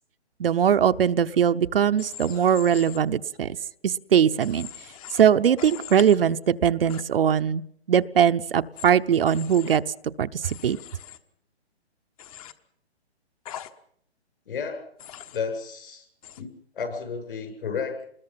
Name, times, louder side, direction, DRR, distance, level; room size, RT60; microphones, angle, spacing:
voice 1, 0.4-3.5 3.8-4.7 5.1-9.8 10.2-10.8, right 8 dB, 55° right, 11 dB, 0.8 m, -21 dB
Human voice / Train, 2.0-3.0 4.4-5.2 5.6-6.2 6.9-7.0 8.8-8.9 9.3-9.8 10.4-11.2 12.2-12.5 13.5-13.7 15.0-15.4 16.2-16.4, left 10 dB, 30° left, 1.3 m, -41 dB
voice 2, 14.5-14.8 15.3-16.1 16.4-16.5 16.7-18.0, left 5 dB, 55° left, 6 dB, 7.7 m, -32 dB
27.5 x 21.0 x 5.8 m, 0.66 s
hypercardioid pair, 150°, 33 cm